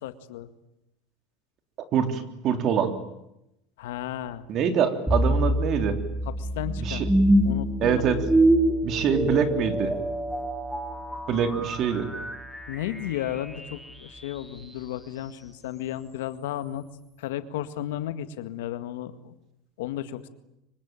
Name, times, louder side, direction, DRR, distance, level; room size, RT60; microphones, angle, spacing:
voice 1, 0.0-0.5 3.8-4.4 6.3-7.1 7.4-8.1 12.7-16.9 17.2-19.4 19.8-20.3, left 12 dB, 90° left, 10 dB, 2.0 m, -34 dB
voice 2, 1.9-2.9 4.5-6.0 6.8-7.1 7.8-8.2 8.8-9.9 11.3-12.1, right 7 dB, 45° right, 7 dB, 3.4 m, -24 dB
sound 1, 5.1-14.2, right 1 dB, ahead, 2.8 m, -25 dB
25.0 x 24.5 x 9.1 m, 0.87 s
supercardioid pair, 125°, 0 cm